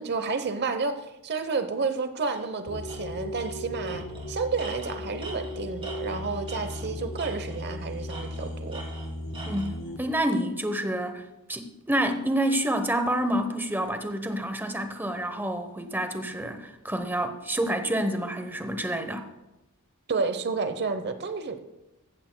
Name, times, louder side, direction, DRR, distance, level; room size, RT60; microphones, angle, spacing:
voice 1, 0.0-8.8 20.1-21.6, right 4 dB, 50° right, 0.9 m, -30 dB
Tools, 2.3-2.5 2.9-3.0 3.3-3.5 3.8-6.9 7.2-7.7 8.1-9.7, right 2 dB, 25° right, 2.9 m, -43 dB
sound 1, 2.7-10.0, left 1 dB, 65° left, 1.9 m, -36 dB
voice 2, 9.5-19.3, right 1 dB, 10° right, 1.0 m, -28 dB
15.0 x 14.0 x 2.3 m
head